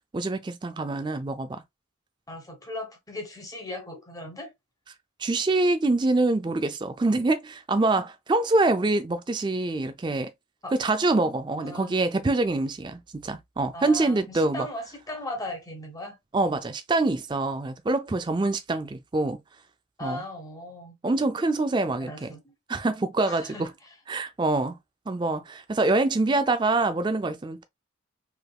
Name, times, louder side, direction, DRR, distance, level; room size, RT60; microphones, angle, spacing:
voice 1, 0.1-1.6 5.2-10.3 10.7-14.7 16.3-19.4 20.0-20.2 21.0-22.3 22.7-23.7 24.1-24.8 25.1-27.6, right 2 dB, 20° right, 0.3 m, -25 dB
voice 2, 2.3-4.5 10.6-10.7 11.5-12.0 13.7-16.2 20.0-21.0 22.0-22.5 23.3-23.9, left 1 dB, 15° left, 0.9 m, -38 dB
3.4 x 3.3 x 2.3 m
head